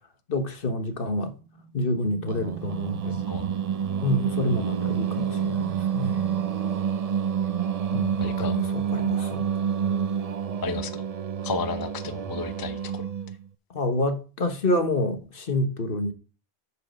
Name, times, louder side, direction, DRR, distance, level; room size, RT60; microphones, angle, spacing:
voice 1, 0.3-1.3 1.7-3.2 4.0-6.1 7.9-9.4 13.7-16.1, left 1 dB, 60° left, 1.4 m, -28 dB
sound 1, 1.1-7.6, right 4 dB, 10° right, 2.7 m, -43 dB
Singing, 2.3-13.4, right 8 dB, 45° right, 0.5 m, -28 dB
voice 2, 8.2-8.6 10.6-11.0 11.4-13.0, left 4 dB, 25° left, 0.6 m, -32 dB
8.4 x 4.9 x 6.4 m
omnidirectional pair, 1.1 m